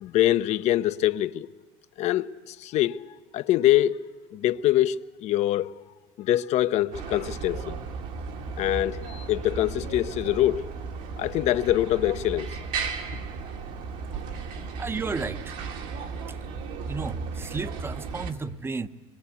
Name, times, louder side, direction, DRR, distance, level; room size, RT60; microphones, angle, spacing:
voice 1, 0.0-1.5 2.0-3.0 3.3-4.0 4.3-5.7 6.2-7.8 8.6-10.6 11.2-12.5, left 13 dB, 55° left, 0.7 m, -24 dB
sound 1, 6.9-18.3, right 5 dB, 70° right, 2.3 m, -35 dB
voice 2, 14.1-14.5 14.8-15.6 16.9-18.9, right 4 dB, 15° right, 0.8 m, -33 dB
25.0 x 21.0 x 8.5 m
supercardioid pair, 120°, 14 cm